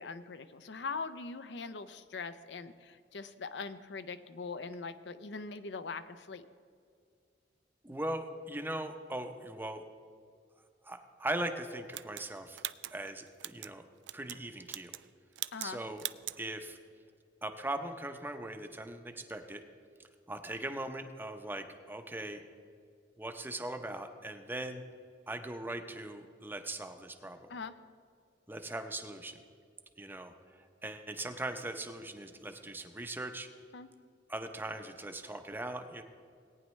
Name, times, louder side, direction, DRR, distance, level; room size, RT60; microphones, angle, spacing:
voice 1, 0.0-6.4 15.5-15.8 27.5-27.8 33.7-33.9, left 4 dB, 70° left, 12 dB, 0.6 m, -42 dB
voice 2, 7.8-9.8 10.8-12.6 12.9-13.8 14.1-15.0 15.6-16.1 16.4-16.8 17.4-19.6 20.3-22.4 23.2-24.8 25.3-27.5 28.5-29.4 30.0-30.3 30.8-33.5 34.3-36.0, right 1 dB, 10° right, 7 dB, 0.6 m, -40 dB
sound 1, 11.9-13.7 14.0-14.4 14.7-15.1 15.4-15.7 16.0-16.4, right 16 dB, 80° right, 0.3 m, -41 dB
18.0 x 9.5 x 3.2 m, 2.2 s
head